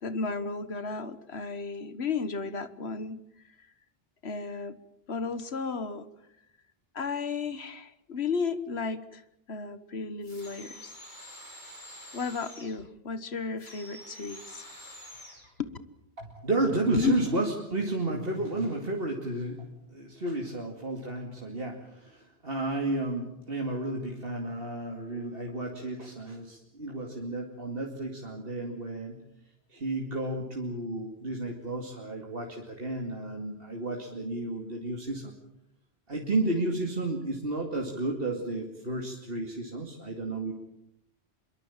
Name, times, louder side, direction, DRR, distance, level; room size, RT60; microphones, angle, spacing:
voice 1, 0.0-3.2 4.2-4.8 5.1-6.1 6.9-9.2 9.5-10.9 12.1-14.7 15.6-15.7 16.9-17.1, left 5 dB, 85° left, 13 dB, 1.6 m, -33 dB
sound 1, 10.2-12.8 13.6-15.5, left 1 dB, 50° left, 6.2 m, -47 dB
voice 2, 16.2-29.2 29.7-35.3 36.1-40.5, right 2 dB, 65° right, 1 dB, 2.7 m, -32 dB
25.0 x 23.0 x 7.3 m, 0.79 s
omnidirectional pair, 1.0 m